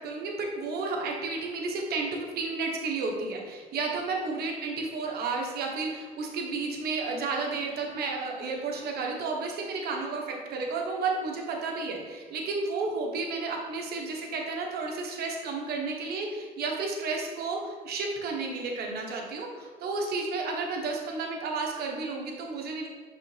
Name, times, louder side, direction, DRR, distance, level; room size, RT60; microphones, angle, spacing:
voice 1, 0.0-22.9, right 3 dB, 70° right, 1 dB, 1.2 m, -32 dB
6.3 x 5.3 x 3.3 m, 1.5 s
cardioid pair, 110°, 17 cm